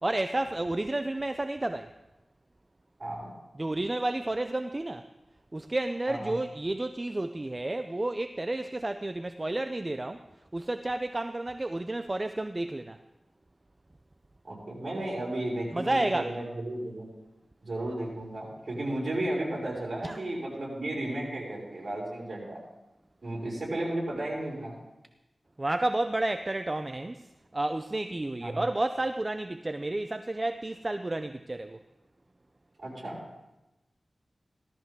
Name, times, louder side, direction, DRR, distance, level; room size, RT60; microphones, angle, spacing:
voice 1, 0.0-1.9 3.6-5.1 5.5-10.2 10.5-13.0 15.7-16.3 20.0-20.2 25.6-31.8, right 2 dB, 30° right, 9 dB, 0.5 m, -31 dB
voice 2, 3.0-3.3 6.1-6.3 14.4-17.1 17.6-22.6 23.2-24.7 28.4-28.6 32.8-33.2, right 1 dB, 55° right, -5 dB, 6.0 m, -34 dB
17.0 x 13.0 x 3.6 m, 0.99 s
wide cardioid pair, 75°, 0 cm